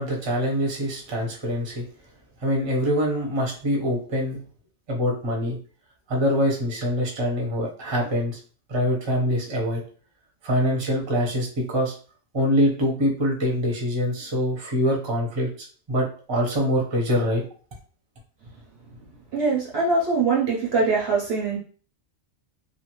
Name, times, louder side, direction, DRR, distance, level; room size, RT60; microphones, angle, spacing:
voice 1, 0.0-1.8 2.4-4.4 4.9-5.6 6.1-8.4 8.7-9.8 10.4-11.9 12.3-15.5 15.9-17.4, equal, 25° right, -1 dB, 0.6 m, -24 dB
voice 2, 19.3-21.6, right 4 dB, 60° right, -2 dB, 0.7 m, -22 dB
2.5 x 2.5 x 2.9 m, 0.41 s
omnidirectional pair, 1.4 m